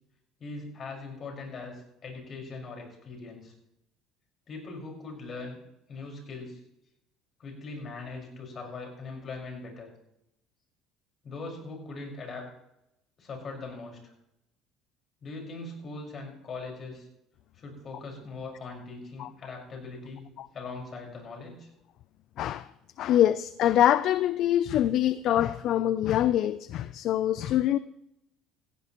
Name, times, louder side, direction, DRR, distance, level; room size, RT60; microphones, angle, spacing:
voice 1, 0.4-3.5 4.5-5.6 5.9-6.6 7.4-9.9 11.2-12.5 13.2-14.0 15.2-17.1 17.5-20.2 20.5-21.7, left 3 dB, 35° left, 1 dB, 5.2 m, -40 dB
voice 2, 22.4-22.7 23.0-27.8, left 12 dB, 55° left, 15 dB, 0.4 m, -24 dB
17.5 x 15.5 x 3.0 m, 0.85 s
cardioid pair, 125°, 0 cm